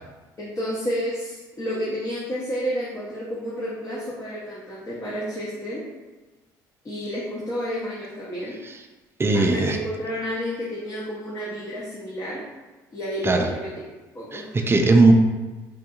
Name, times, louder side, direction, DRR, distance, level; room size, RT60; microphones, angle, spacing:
voice 1, 0.4-5.8 6.8-8.6 9.3-12.4 12.9-13.7 14.1-14.7, equal, 30° left, -6 dB, 0.8 m, -30 dB
voice 2, 9.2-9.8 13.2-13.5 14.3-15.1, right 3 dB, 25° right, 4 dB, 0.4 m, -18 dB
3.6 x 2.6 x 2.4 m, 1.2 s
hypercardioid pair, 60°, 10 cm